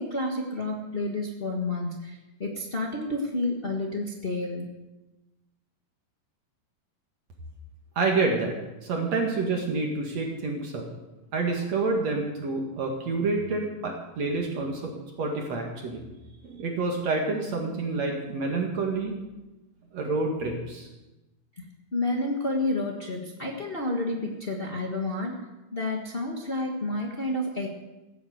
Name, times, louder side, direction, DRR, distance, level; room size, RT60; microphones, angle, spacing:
voice 1, 0.0-4.7 21.9-25.4 25.7-27.7, left 2 dB, 75° left, -1 dB, 0.5 m, -30 dB
voice 2, 8.0-8.5 8.8-10.8 11.3-16.0 16.4-19.1 19.9-20.9, right 3 dB, 55° right, 1 dB, 2.8 m, -28 dB
16.0 x 9.1 x 7.8 m, 1.1 s
omnidirectional pair, 3.9 m